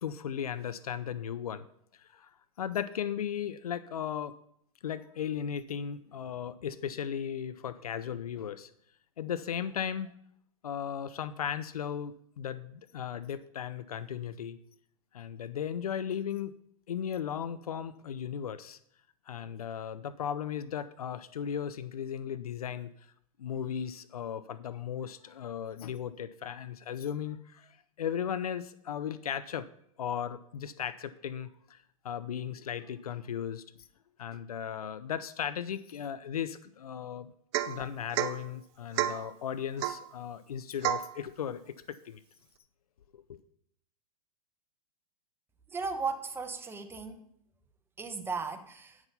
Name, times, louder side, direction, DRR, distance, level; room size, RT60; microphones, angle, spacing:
voice 1, 0.0-1.7 2.0-2.3 2.6-4.3 4.8-8.7 9.2-10.1 10.6-14.6 15.1-16.5 16.9-18.8 19.3-22.9 23.4-29.7 30.0-31.8 32.0-33.6 34.2-37.3 37.7-42.2 43.1-43.4, left 8 dB, 80° left, 14 dB, 0.6 m, -36 dB
Domestic sounds home sounds / Chink clink / Drip, 37.5-37.8 38.1-38.4 39.0-39.3 39.8-40.1 40.8-41.1, right 13 dB, 50° right, 0.7 m, -30 dB
voice 2, 45.7-47.2 48.0-49.0, right 4 dB, 10° right, 7 dB, 1.0 m, -36 dB
9.6 x 6.0 x 5.5 m, 0.70 s
hypercardioid pair, 115°, 19 cm